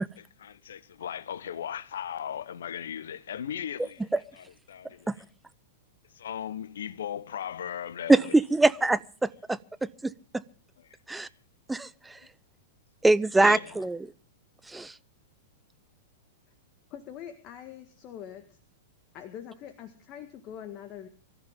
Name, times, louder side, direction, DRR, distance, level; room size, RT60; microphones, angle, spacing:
voice 1, 0.0-4.1 4.4-5.1 6.1-8.3 10.9-11.0 11.2-11.3 13.4-13.7, left 9 dB, 70° left, 1.0 m, -37 dB
voice 2, 8.1-10.4 11.1-11.3 11.7-12.2 13.0-14.0 14.7-15.0, right 2 dB, 10° right, 0.7 m, -24 dB
voice 3, 16.9-18.6 19.1-21.1, left 9 dB, 40° left, 1.7 m, -43 dB
24.5 x 14.0 x 3.7 m
hypercardioid pair, 105°, 0 cm